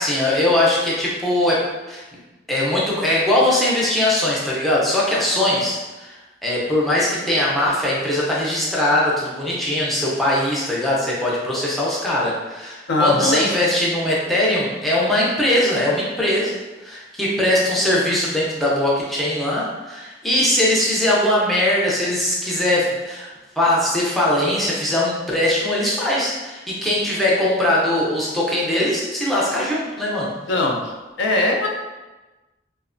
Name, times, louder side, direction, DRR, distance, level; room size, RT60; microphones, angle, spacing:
voice 1, 0.0-2.0 2.5-23.3 23.6-30.3, left 1 dB, ahead, -6 dB, 0.4 m, -21 dB
voice 2, 12.9-13.5 30.5-30.9 31.2-31.7, left 2 dB, 70° left, 0 dB, 0.4 m, -20 dB
2.9 x 2.1 x 2.4 m, 1.2 s
head